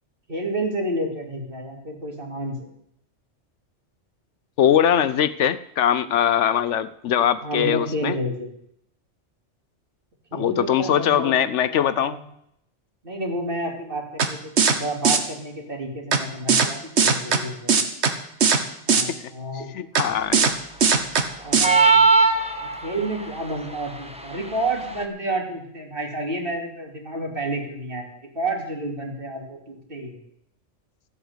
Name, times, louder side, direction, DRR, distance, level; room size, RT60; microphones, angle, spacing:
voice 1, 0.3-2.7 7.4-8.5 10.3-11.3 11.7-12.2 13.0-17.9 18.9-19.7 21.4-22.1 22.8-30.2, right 1 dB, 50° right, 1 dB, 2.9 m, -30 dB
voice 2, 4.6-8.2 10.3-12.2 18.9-19.2 19.7-20.5, left 9 dB, 75° left, 15 dB, 1.0 m, -21 dB
sound 1, 14.2-14.3 14.6-14.8 15.0-15.2 16.1-16.2 16.5-16.7 17.0-17.4 17.7-18.1 18.4-18.6 18.9-19.0 20.0-20.1 20.3-20.5 20.8-21.2 21.5-21.7, right 5 dB, 65° right, 1.5 m, -18 dB
sound 2, 21.6-23.1, right 4 dB, 5° right, 1.1 m, -17 dB
14.0 x 8.3 x 8.0 m, 0.74 s
omnidirectional pair, 1.2 m